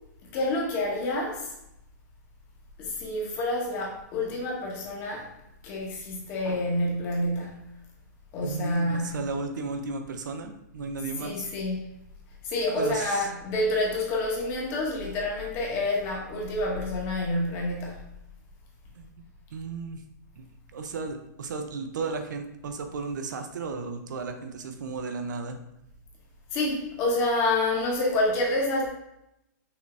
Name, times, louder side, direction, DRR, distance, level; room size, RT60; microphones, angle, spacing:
voice 1, 0.3-1.5 2.8-5.3 5.6-7.7 8.3-9.2 11.2-11.9 12.4-18.1 26.5-28.9, left 1 dB, 25° left, -1 dB, 1.0 m, -28 dB
voice 2, 8.4-11.5 12.8-13.3 19.0-19.2 19.5-20.0 20.4-25.6, right 4 dB, 75° right, 6 dB, 0.7 m, -34 dB
5.7 x 2.7 x 3.3 m, 0.83 s
hypercardioid pair, 170°, 10 cm